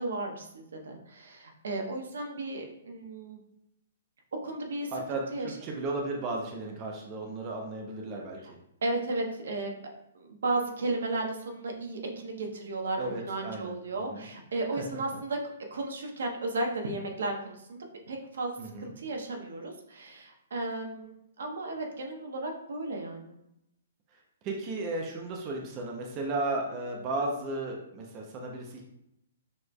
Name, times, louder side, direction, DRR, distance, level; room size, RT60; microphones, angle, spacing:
voice 1, 0.0-3.4 4.4-4.9 5.3-5.5 8.8-9.9 10.1-15.4 15.7-17.8 18.1-23.3, right 2 dB, 80° right, 2 dB, 0.9 m, -34 dB
voice 2, 4.9-8.4 13.0-14.3 18.6-18.9 24.4-28.8, right 2 dB, 25° right, 0 dB, 0.6 m, -34 dB
6.3 x 3.2 x 2.2 m, 0.81 s
hypercardioid pair, 160°, 0 cm